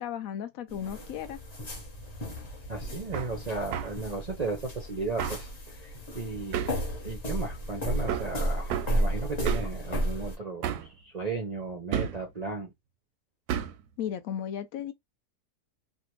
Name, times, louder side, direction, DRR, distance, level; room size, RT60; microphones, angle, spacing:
voice 1, 0.0-1.4 14.0-14.9, left 9 dB, 70° left, 0.9 m, -35 dB
sound 1, 0.7-10.4, right 1 dB, 30° left, 0.9 m, -33 dB
voice 2, 2.7-6.7 7.0-12.7, right 3 dB, 50° right, 0.5 m, -35 dB
Hammer, 3.1-3.3 3.7-4.0 5.2-5.5 6.5-6.8 8.1-8.3 8.7-8.9 9.5-9.8 10.6-10.9 11.9-12.2 13.5-13.8, right 9 dB, 90° right, 1.1 m, -31 dB
3.3 x 2.3 x 3.0 m
omnidirectional pair, 1.6 m